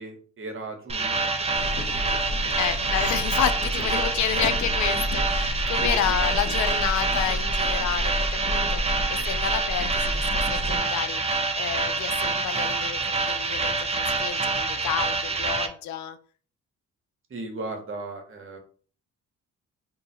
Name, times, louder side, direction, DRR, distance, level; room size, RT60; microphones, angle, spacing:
voice 1, 0.0-2.5 2.8-2.9 3.9-4.1 4.4-4.5 5.8-6.2 17.3-18.6, right 2 dB, 45° right, 1.2 m, -38 dB
sound 1, 0.9-15.7, right 3 dB, 20° right, 0.5 m, -27 dB
sound 2, 1.5-10.8, left 1 dB, 40° left, 0.9 m, -30 dB
voice 2, 2.6-16.2, left 10 dB, 70° left, 0.5 m, -30 dB
2.7 x 2.6 x 4.2 m
cardioid pair, 90°, 30 cm